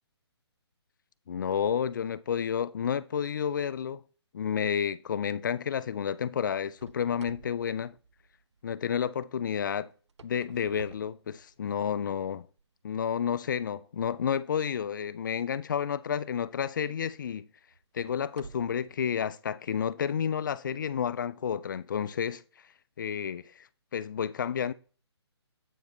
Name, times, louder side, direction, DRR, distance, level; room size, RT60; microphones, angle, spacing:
voice 1, 1.3-4.0 4.3-7.9 8.6-9.9 10.2-12.5 12.8-17.5 17.9-22.4 23.0-23.7 23.9-24.7, left 8 dB, 45° left, 0.3 m, -30 dB
sound 1, 6.8-8.8 9.9-11.9 12.5-12.6 13.3-13.4 16.0-16.2 16.7-16.8 17.7-19.0, right 4 dB, 80° right, 0.4 m, -51 dB
8.0 x 4.8 x 3.1 m
figure-of-eight pair, 140°, 14 cm